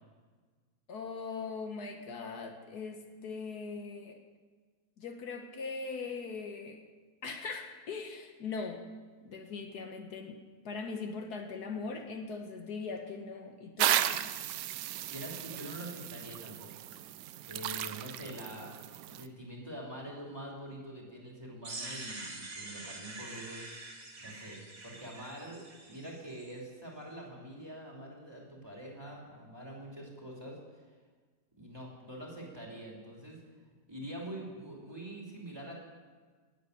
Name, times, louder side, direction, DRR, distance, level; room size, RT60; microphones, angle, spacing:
voice 1, 0.9-4.1 5.0-6.8 7.2-8.8 9.2-10.4 10.6-14.3, left 4 dB, 70° left, 4 dB, 1.6 m, -40 dB
sound 1, 13.8-19.3, right 12 dB, 90° right, 1.2 m, -35 dB
voice 2, 14.7-16.9 17.4-18.8 19.0-23.7 24.2-30.8 31.6-33.4 33.9-35.8, right 1 dB, 15° right, -3 dB, 2.6 m, -45 dB
sound 2, 21.6-26.5, right 2 dB, 55° right, 2.5 m, -45 dB
10.5 x 8.1 x 9.7 m, 1.5 s
omnidirectional pair, 1.8 m